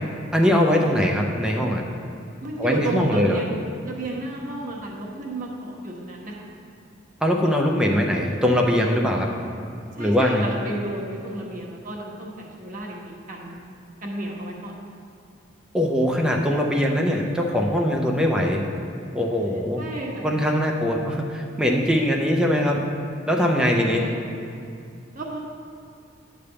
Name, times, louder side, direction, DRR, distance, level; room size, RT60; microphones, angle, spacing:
voice 1, 0.3-1.8 2.6-3.4 7.2-9.3 10.0-10.6 15.7-18.6 19.1-19.8 20.2-22.8 23.3-24.0, equal, 5° right, 0 dB, 0.5 m, -21 dB
voice 2, 2.4-6.5 10.0-13.6 14.0-14.7 19.8-20.3 23.8-24.3 25.1-25.4, right 2 dB, 45° right, -2 dB, 1.2 m, -32 dB
9.8 x 3.4 x 6.8 m, 2.4 s
head